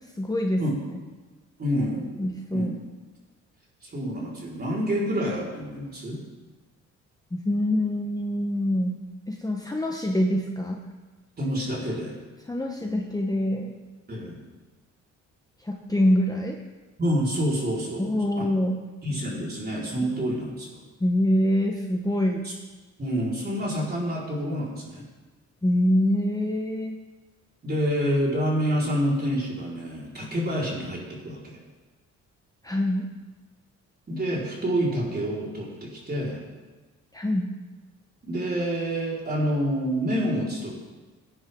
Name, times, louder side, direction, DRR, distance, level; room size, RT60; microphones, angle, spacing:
voice 1, 0.2-0.6 2.2-2.7 7.3-9.0 9.3-10.8 12.5-13.7 15.6-16.6 18.0-18.8 21.0-22.5 25.6-27.0 32.6-33.1 37.1-37.5, left 1 dB, 10° left, 1 dB, 1.1 m, -25 dB
voice 2, 1.6-2.2 2.5-2.7 3.8-6.2 11.4-12.1 14.1-14.4 17.0-18.1 18.4-18.5 19.0-20.8 22.4-22.5 23.0-25.0 27.6-31.6 34.1-36.4 38.2-40.7, equal, 30° right, -4 dB, 4.7 m, -27 dB
18.0 x 9.7 x 3.8 m, 1.3 s
cardioid pair, 90°, 30 cm